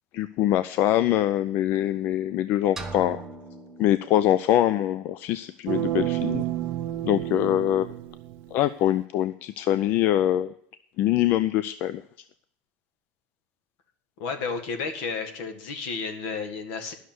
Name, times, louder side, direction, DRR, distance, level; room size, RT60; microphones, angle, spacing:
voice 1, 0.1-3.2 3.8-6.4 7.0-7.9 8.5-10.5 11.0-12.0, left 12 dB, 50° left, 13 dB, 0.4 m, -23 dB
sound 1, 2.8-4.7, right 3 dB, 5° right, 1.1 m, -40 dB
sound 2, 5.7-8.6, right 13 dB, 60° right, 0.9 m, -30 dB
voice 2, 14.2-16.9, left 4 dB, 70° left, 7 dB, 1.8 m, -32 dB
11.5 x 6.4 x 7.8 m, 0.66 s
cardioid pair, 150°, 4 cm